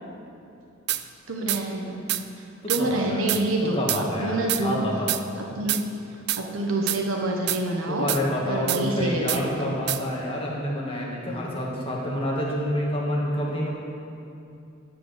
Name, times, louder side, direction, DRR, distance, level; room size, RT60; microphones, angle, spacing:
sound 1, 0.9-1.0 1.5-1.6 2.1-2.2 2.7-2.8 3.3-3.4 3.9-4.0 4.5-4.6 5.1-5.2 5.7-5.8 6.3-6.4 6.9-7.0 7.5-7.6 8.1-8.2 8.7-8.8 9.3-9.4 9.9-10.0, right 14 dB, 55° right, 0.4 m, -26 dB
voice 1, 1.3-2.0 2.3-4.8 5.4-5.8 6.3-8.1 8.5-9.8, right 1 dB, 85° right, 0 dB, 1.1 m, -27 dB
voice 2, 2.8-3.2 3.6-5.1 7.9-13.7, left 1 dB, 30° left, -3 dB, 1.6 m, -28 dB
11.5 x 5.0 x 6.6 m, 2.7 s
head